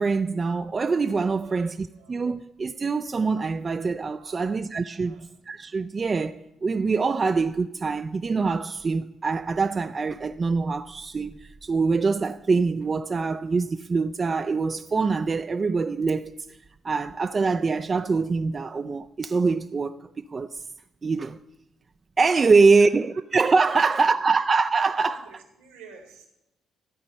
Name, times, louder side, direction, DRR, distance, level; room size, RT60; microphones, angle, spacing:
voice 1, 0.0-5.2 5.5-16.3 16.8-20.6 21.0-21.4 22.2-25.3, right 4 dB, 40° right, 0.4 m, -24 dB
voice 2, 1.4-2.4 4.2-4.5 5.0-5.3 22.8-23.2 23.7-24.2 25.0-26.3, right 6 dB, 90° right, 2.0 m, -50 dB
13.5 x 5.1 x 7.6 m
hypercardioid pair, 50°, 0 cm